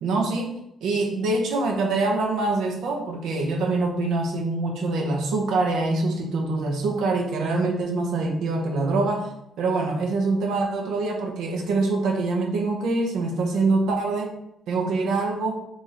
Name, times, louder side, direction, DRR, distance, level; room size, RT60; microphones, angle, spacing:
voice 1, 0.0-9.3 9.6-14.3 14.7-15.6, right 3 dB, 80° right, 1 dB, 0.6 m, -24 dB
3.1 x 2.6 x 3.9 m, 0.82 s
cardioid pair, 90°, 0 cm